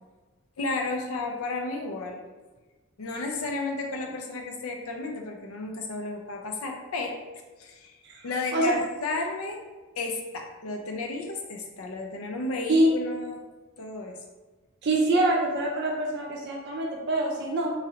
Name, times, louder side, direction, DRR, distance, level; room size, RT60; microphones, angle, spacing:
voice 1, 0.6-2.2 3.0-7.2 7.6-9.6 10.0-13.4 13.8-14.2, left 3 dB, 75° left, 2 dB, 0.5 m, -33 dB
voice 2, 8.0-8.7 12.7-12.9 14.8-17.7, right 1 dB, 50° right, -2 dB, 0.5 m, -25 dB
3.1 x 2.5 x 2.7 m, 1.3 s
head